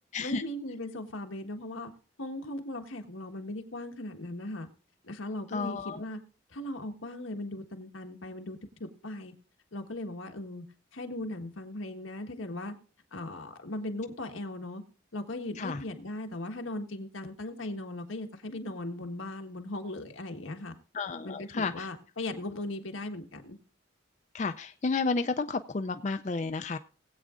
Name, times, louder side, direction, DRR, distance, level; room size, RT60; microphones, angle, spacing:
voice 1, 0.2-1.9 2.2-4.7 5.0-6.2 6.5-9.3 9.7-10.6 10.9-12.7 13.1-14.8 15.1-20.7 21.2-23.6, left 1 dB, 85° left, 4 dB, 1.5 m, -38 dB
voice 2, 5.5-6.0 15.6-15.8 20.9-21.9 24.3-26.8, left 4 dB, 35° left, 8 dB, 0.4 m, -31 dB
19.5 x 8.4 x 2.5 m, 0.40 s
head